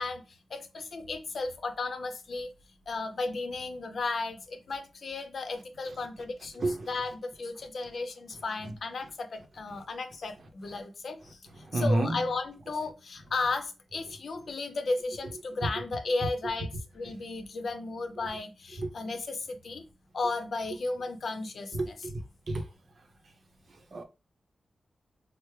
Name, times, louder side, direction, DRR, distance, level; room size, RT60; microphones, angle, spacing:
voice 1, 0.0-2.5 2.9-11.4 11.7-19.8 20.1-21.9, left 3 dB, 65° left, 0.6 m, -34 dB
voice 2, 11.6-12.2 18.8-18.9 21.7-22.2 22.5-22.7 23.9-24.0, right 2 dB, 60° right, 0.6 m, -29 dB
4.3 x 2.0 x 3.2 m
cardioid pair, 75°, 0 cm